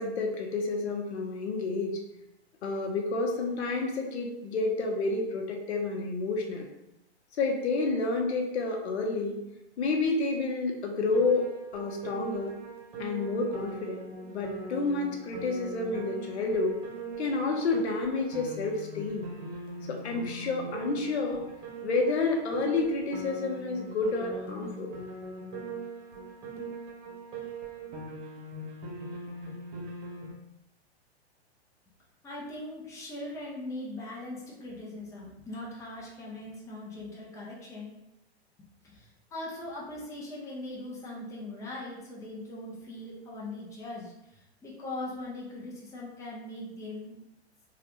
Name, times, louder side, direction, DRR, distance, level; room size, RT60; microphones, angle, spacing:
voice 1, 0.0-2.0 2.6-6.7 7.4-9.4 9.8-11.5 11.7-12.5 13.0-16.8 17.2-19.3 19.9-21.4 21.8-24.9, left 3 dB, 80° left, 2 dB, 0.8 m, -30 dB
Piano, 11.1-30.3, right 3 dB, 50° right, 1.1 m, -41 dB
voice 2, 32.2-37.9 38.8-47.1, left 1 dB, 10° left, -5 dB, 0.6 m, -40 dB
3.1 x 2.4 x 2.9 m, 0.86 s
hypercardioid pair, 125°, 33 cm